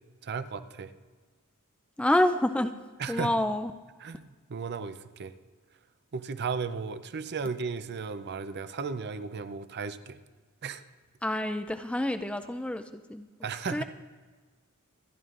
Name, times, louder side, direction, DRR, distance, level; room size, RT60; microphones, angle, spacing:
voice 1, 0.2-0.9 3.0-3.3 4.0-5.3 6.1-10.2 10.6-10.8 13.4-13.8, right 5 dB, 50° right, 11 dB, 0.6 m, -35 dB
voice 2, 2.0-2.8 3.1-3.7 11.2-13.3 13.7-13.8, left 1 dB, 5° left, 9 dB, 0.4 m, -28 dB
26.0 x 11.0 x 2.5 m, 1.4 s
head